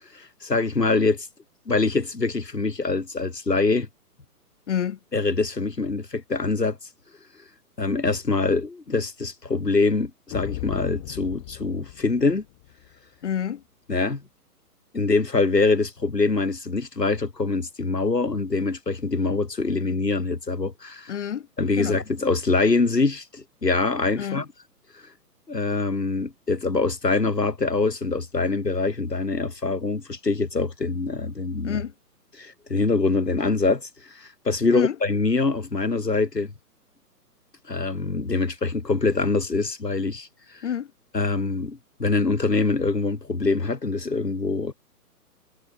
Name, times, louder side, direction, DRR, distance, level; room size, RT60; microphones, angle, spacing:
voice 1, 0.1-1.3 1.7-3.9 5.1-6.8 7.8-12.4 13.9-14.2 14.9-21.1 21.6-24.4 24.9-25.0 25.5-31.8 32.4-36.5 37.7-40.6 41.1-44.7, left 3 dB, 80° left, 2.6 m, -24 dB
voice 2, 4.7-5.0 13.2-13.6 21.1-21.5 21.8-22.0 24.2-24.4 31.6-31.9 34.7-35.0 40.6-40.9, left 9 dB, 45° left, 2.8 m, -28 dB
sound 1, 10.3-12.9, left 19 dB, 15° left, 1.0 m, -37 dB
figure-of-eight pair, 130°, 48 cm